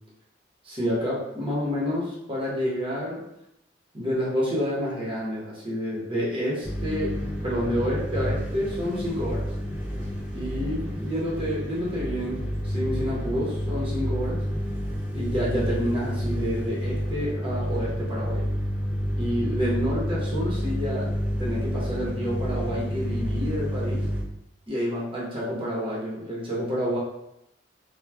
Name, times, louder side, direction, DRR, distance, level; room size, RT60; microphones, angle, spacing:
voice 1, 0.6-3.2 3.9-9.5 10.3-14.4 15.1-18.5 19.2-21.1 21.4-24.1 24.7-27.0, equal, 30° right, -6 dB, 0.9 m, -29 dB
sound 1, 6.6-24.2, equal, 5° right, 0.4 m, -29 dB
3.0 x 2.2 x 2.3 m, 0.83 s
head